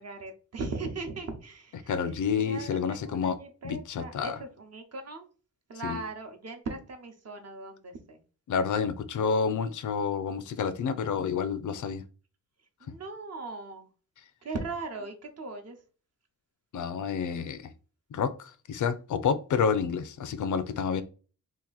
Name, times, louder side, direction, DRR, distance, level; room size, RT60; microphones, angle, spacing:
voice 1, 0.0-1.9 2.4-5.3 5.7-8.2 12.8-13.9 14.4-15.8, right 3 dB, 50° right, 4 dB, 0.8 m, -39 dB
voice 2, 1.9-3.4 3.6-4.4 5.8-6.0 8.5-12.0 16.7-17.7 18.1-21.0, left 6 dB, 70° left, 12 dB, 0.5 m, -29 dB
2.9 x 2.5 x 3.9 m, 0.37 s
wide cardioid pair, 110°, 31 cm